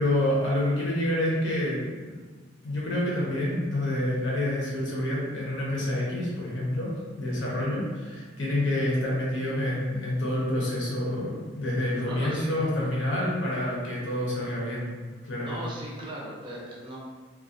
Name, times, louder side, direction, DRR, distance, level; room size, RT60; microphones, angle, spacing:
voice 1, 0.0-2.2 2.6-6.9 7.2-14.9 15.2-15.6, left 1 dB, 80° left, -5 dB, 0.8 m, -28 dB
voice 2, 12.0-12.5 15.4-17.0, right 1 dB, 25° right, -5 dB, 0.5 m, -37 dB
2.3 x 2.3 x 2.4 m, 1.4 s
head